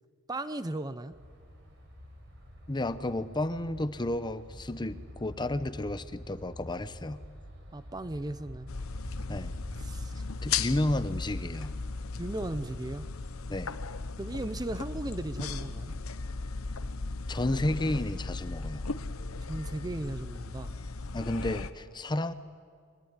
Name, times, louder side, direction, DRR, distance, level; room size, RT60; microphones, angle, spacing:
voice 1, 0.3-1.1 7.7-8.7 9.8-10.1 12.2-13.1 14.2-15.9 19.5-20.8, right 1 dB, 20° right, 12 dB, 0.6 m, -36 dB
sound 1, 1.1-13.4, equal, 60° right, 6.2 m, -48 dB
voice 2, 2.7-7.2 9.3-9.5 10.4-11.7 13.5-13.8 17.3-18.8 21.1-22.3, left 1 dB, 20° left, 13 dB, 0.8 m, -32 dB
sound 2, 8.7-21.7, left 4 dB, 85° left, 1.0 m, -36 dB
23.5 x 23.0 x 9.6 m, 2.1 s
head